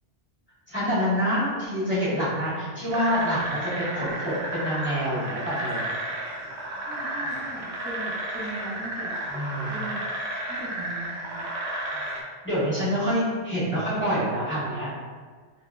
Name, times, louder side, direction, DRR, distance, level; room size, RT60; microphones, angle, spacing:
voice 1, 0.7-5.9 9.3-9.7 12.4-14.9, equal, 10° left, -12 dB, 1.2 m, -26 dB
voice 2, 1.3-1.8 2.4-2.7 6.8-9.2 9.7-10.0 10.5-11.5, right 1 dB, 10° right, -14 dB, 0.7 m, -39 dB
sound 1, 2.9-12.2, right 1 dB, 75° right, 0.9 m, -32 dB
2.9 x 2.9 x 2.3 m, 1.5 s
omnidirectional pair, 1.1 m